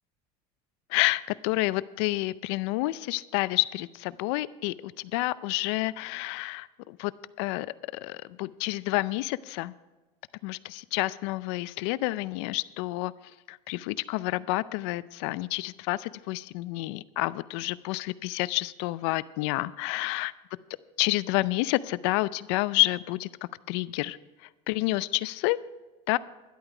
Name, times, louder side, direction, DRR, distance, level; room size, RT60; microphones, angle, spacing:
voice 1, 0.9-7.1 7.4-7.7 8.0-9.7 10.4-13.1 13.5-20.3 21.0-23.3 23.7-24.2 24.7-25.6 26.1-26.2, left 20 dB, 80° left, 18 dB, 0.5 m, -29 dB
12.5 x 11.0 x 4.9 m, 1.2 s
supercardioid pair, 125°, 14 cm